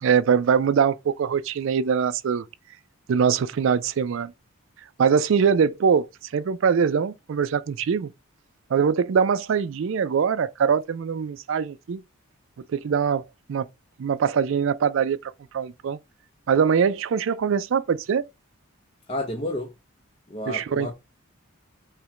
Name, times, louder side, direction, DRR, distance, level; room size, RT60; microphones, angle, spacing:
voice 1, 0.0-2.4 3.1-4.3 5.0-6.1 6.3-8.1 8.7-12.0 12.7-13.2 13.5-13.7 14.0-16.0 16.5-18.2 20.5-20.9, right 6 dB, 60° right, 0.3 m, -22 dB
voice 2, 19.1-19.7 20.3-20.9, left 1 dB, 25° left, 0.5 m, -30 dB
5.7 x 2.1 x 3.7 m
head